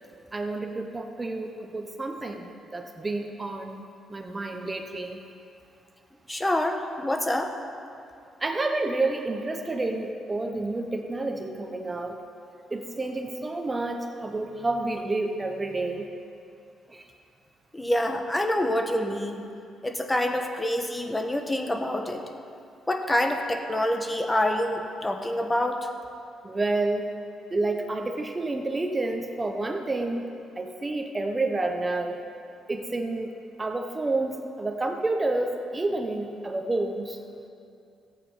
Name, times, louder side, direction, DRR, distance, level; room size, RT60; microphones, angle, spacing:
voice 1, 0.3-5.2 8.4-12.2 12.7-16.1 16.9-17.1 26.4-27.1 27.5-30.2 30.6-32.2 32.7-33.3 33.6-37.2, right 2 dB, 25° right, 4 dB, 0.9 m, -29 dB
voice 2, 6.3-7.5 17.7-19.4 19.8-22.2 22.9-25.9, left 1 dB, 15° left, 5 dB, 1.2 m, -26 dB
15.0 x 8.5 x 5.5 m, 2.5 s
cardioid pair, 90°, 0 cm